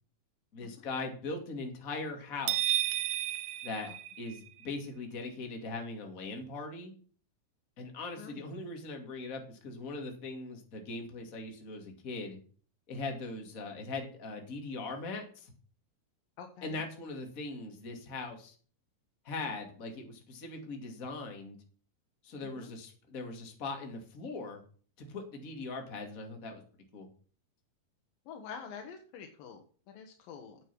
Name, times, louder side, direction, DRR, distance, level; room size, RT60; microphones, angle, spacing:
voice 1, 0.5-2.8 3.6-3.9 4.2-6.9 7.8-12.4 12.9-15.5 16.6-18.6 19.2-21.6 22.2-24.6 25.0-26.6 26.9-27.1, left 3 dB, 25° left, 3 dB, 2.1 m, -40 dB
sound 1, 2.5-4.7, right 13 dB, 80° right, 1.8 m, -32 dB
voice 2, 16.4-16.8 22.4-22.7 28.3-30.6, left 6 dB, 70° left, 4 dB, 2.7 m, -47 dB
8.9 x 7.8 x 6.0 m, 0.42 s
omnidirectional pair, 4.6 m